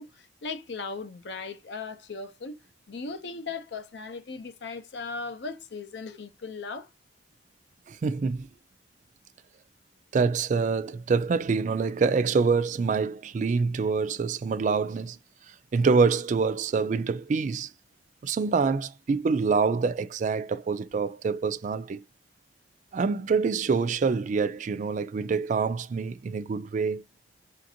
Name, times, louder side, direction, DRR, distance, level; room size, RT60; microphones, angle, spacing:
voice 1, 0.0-2.6 2.9-6.9, left 4 dB, 70° left, 0.6 m, -38 dB
voice 2, 7.9-8.5 10.1-15.2 15.7-17.7 18.2-22.0 22.9-27.0, right 5 dB, 45° right, 0.3 m, -26 dB
5.0 x 2.5 x 2.7 m
head